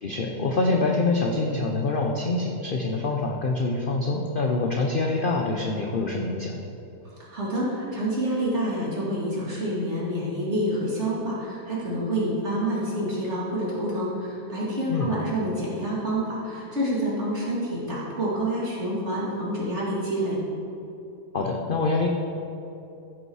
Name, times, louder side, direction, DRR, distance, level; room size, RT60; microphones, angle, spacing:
voice 1, 0.0-6.6 14.9-15.2 21.3-22.1, left 3 dB, 60° left, 1 dB, 0.5 m, -25 dB
voice 2, 7.2-20.4, right 1 dB, 40° right, -7 dB, 2.8 m, -28 dB
14.5 x 5.3 x 4.8 m, 2.8 s
omnidirectional pair, 1.8 m